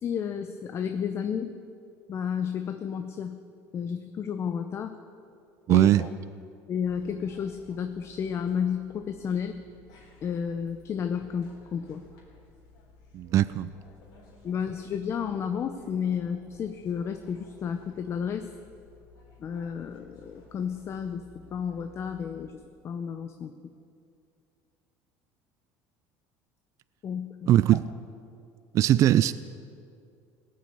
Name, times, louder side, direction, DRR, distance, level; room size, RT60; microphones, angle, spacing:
voice 1, 0.0-1.5 2.1-3.4 3.7-5.0 5.7-6.1 6.7-9.5 10.2-12.0 14.4-18.5 19.4-21.2 21.5-22.6 22.8-23.5 27.0-27.8, left 7 dB, 40° left, 7 dB, 0.7 m, -32 dB
voice 2, 5.7-6.0 13.1-13.7 27.5-27.8 28.7-29.3, right 13 dB, 45° right, 15 dB, 0.3 m, -20 dB
sound 1, 6.8-22.5, left 4 dB, 70° left, 3.8 m, -56 dB
17.5 x 6.4 x 8.4 m, 2.5 s
supercardioid pair, 110°, 7 cm